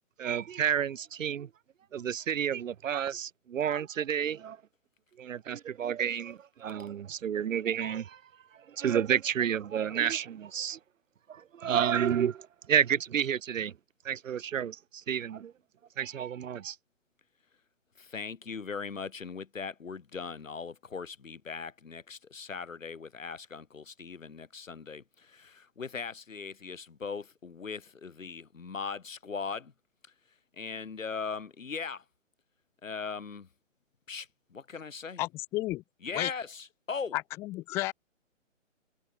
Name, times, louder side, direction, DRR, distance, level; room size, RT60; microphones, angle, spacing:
voice 1, 0.2-1.5 1.9-4.6 5.2-8.2 8.8-10.8 11.3-13.7 14.0-15.5 16.0-16.8, right 9 dB, 80° right, 0.6 m, -30 dB
voice 2, 18.0-29.7 30.6-32.0 32.8-33.5 34.1-35.2 36.0-37.2, left 5 dB, 85° left, 1.8 m, -39 dB
voice 3, 35.2-35.8 36.1-36.3 37.1-37.9, left 19 dB, 5° left, 0.6 m, -32 dB
figure-of-eight pair, 145°, 38 cm